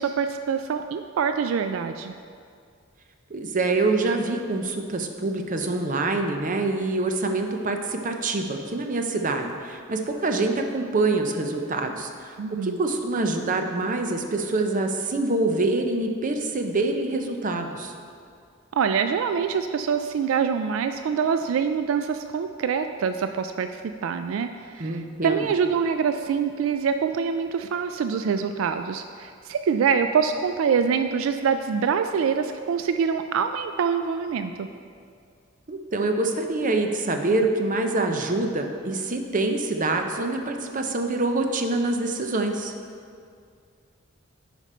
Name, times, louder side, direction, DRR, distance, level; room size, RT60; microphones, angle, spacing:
voice 1, 0.0-2.1 12.4-12.8 18.7-34.7, right 6 dB, 80° right, 8 dB, 0.3 m, -25 dB
voice 2, 3.3-12.4 12.6-17.9 24.8-25.5 35.7-42.7, right 2 dB, 40° right, 4 dB, 0.7 m, -25 dB
10.0 x 5.1 x 4.3 m, 2.2 s
head